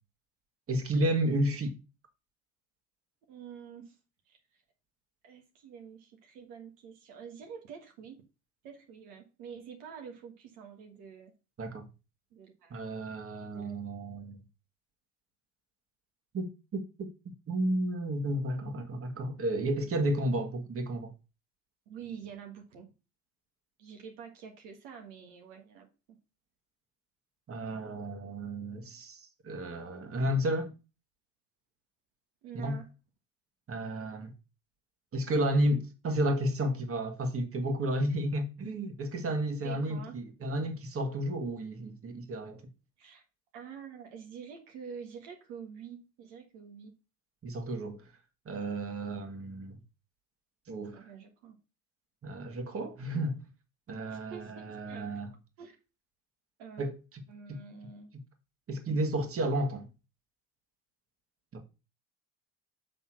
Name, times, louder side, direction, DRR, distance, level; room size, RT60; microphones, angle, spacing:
voice 1, 0.7-1.7 11.6-11.9 12.7-14.4 16.3-17.1 17.5-21.1 27.5-29.2 29.4-30.7 32.5-32.8 33.7-34.3 35.1-42.6 47.4-48.0 48.5-49.8 50.7-51.0 52.2-53.4 53.9-55.3 56.8-56.9 57.5-57.6 58.7-59.8 61.5-61.6, right 1 dB, 35° right, 1.8 m, -32 dB
voice 2, 3.3-3.9 4.3-4.4 5.2-8.2 8.6-11.3 12.3-12.9 13.5-13.7 14.0-14.3 21.9-22.9 23.8-25.9 32.4-32.9 39.6-40.2 43.0-43.2 43.5-46.9 50.9-51.6 54.0-55.1 55.6-55.7 56.6-56.8 57.3-58.1, right 7 dB, 75° right, 1.6 m, -47 dB
6.8 x 3.6 x 6.0 m
hypercardioid pair, 75°, 38 cm